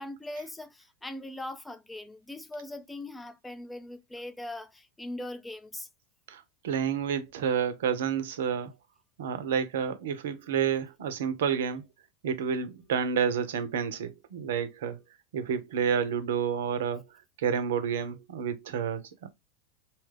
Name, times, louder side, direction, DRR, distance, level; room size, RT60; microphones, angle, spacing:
voice 1, 0.0-5.9, left 1 dB, 10° left, 0.5 m, -40 dB
voice 2, 6.3-8.7 9.2-11.8 12.2-15.0 15.3-17.0 17.4-19.3, right 7 dB, 70° right, 0.6 m, -29 dB
2.8 x 2.3 x 3.2 m
hypercardioid pair, 90°, 0 cm